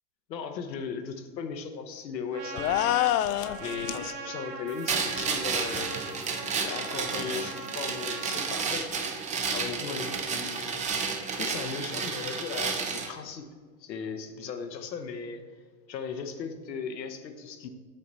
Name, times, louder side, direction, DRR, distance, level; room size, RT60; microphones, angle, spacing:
voice 1, 0.3-3.0 3.6-5.9 6.5-8.9 9.5-10.8 11.4-13.5 13.8-15.4 15.9-17.7, left 6 dB, 90° left, 7 dB, 1.0 m, -37 dB
Trumpet, 2.3-8.5, right 4 dB, 80° right, 1.3 m, -40 dB
sound 1, 2.6-4.1, left 13 dB, 70° left, 0.5 m, -26 dB
sound 2, 4.9-13.1, right 5 dB, 15° right, 0.5 m, -31 dB
7.6 x 6.7 x 4.0 m, 1.5 s
hypercardioid pair, 115°, 49 cm